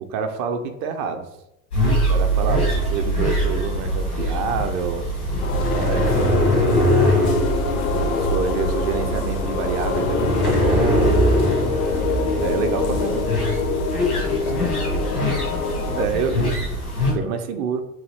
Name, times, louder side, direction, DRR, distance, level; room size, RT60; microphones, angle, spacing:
voice 1, 0.1-1.3 2.1-5.0 5.7-11.2 12.4-13.3 16.0-16.3 17.1-17.8, right 5 dB, 40° right, 7 dB, 0.5 m, -27 dB
sound 1, 1.7-17.1, equal, 90° left, 1.2 m, -22 dB
sound 2, 5.4-16.1, left 5 dB, 70° left, 0.5 m, -25 dB
voice 2, 14.4-15.5 15.9-16.7 17.0-17.3, left 3 dB, 20° left, 4 dB, 0.4 m, -35 dB
3.0 x 2.3 x 3.2 m, 0.85 s
figure-of-eight pair, 75°, 43 cm